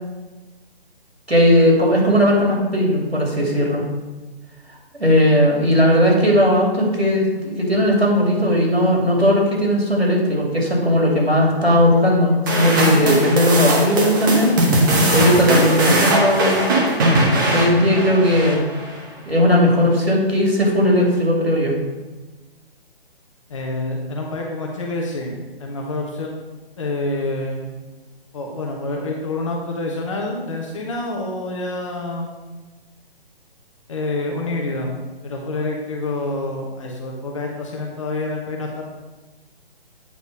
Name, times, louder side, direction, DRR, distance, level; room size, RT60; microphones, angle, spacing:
voice 1, 1.3-3.8 5.0-14.6 15.1-16.7 17.5-18.6 19.2-21.7, equal, 90° right, -2 dB, 2.7 m, -17 dB
sound 1, 12.5-19.0, right 1 dB, 20° right, 0.9 m, -19 dB
voice 2, 23.5-25.3 25.6-26.4 26.8-27.7 28.3-32.3 33.9-35.0 35.2-38.8, left 2 dB, 30° left, 0 dB, 1.0 m, -27 dB
8.4 x 4.1 x 5.3 m, 1.2 s
figure-of-eight pair, 140°, 31 cm